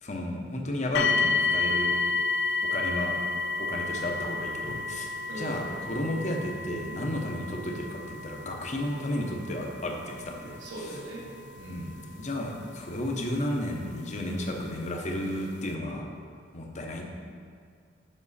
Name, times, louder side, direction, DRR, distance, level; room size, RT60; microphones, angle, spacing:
voice 1, 0.0-2.0 2.7-3.2 3.6-10.6 11.7-16.1 16.5-17.0, left 1 dB, 40° left, 1 dB, 0.8 m, -33 dB
sound 1, 0.9-13.8 14.7-14.8 15.3-15.4, left 4 dB, 65° left, 0.4 m, -31 dB
voice 2, 5.3-5.7 10.6-11.9, right 1 dB, 75° right, -4 dB, 1.5 m, -40 dB
7.3 x 6.1 x 4.1 m, 2.2 s
head